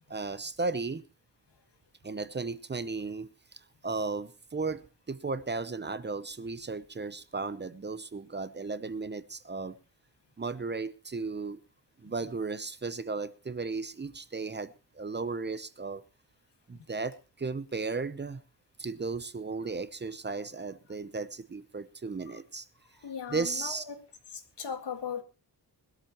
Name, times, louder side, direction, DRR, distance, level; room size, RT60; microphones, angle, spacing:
voice 1, 0.1-1.0 2.0-9.8 10.4-11.6 12.0-16.0 16.7-18.4 18.8-22.7 23.3-23.9, right 4 dB, 25° right, 0.7 m, -35 dB
voice 2, 23.0-24.0 24.3-25.2, left 7 dB, 85° left, 2.0 m, -38 dB
20.0 x 13.0 x 3.0 m
wide cardioid pair, 155°, 40 cm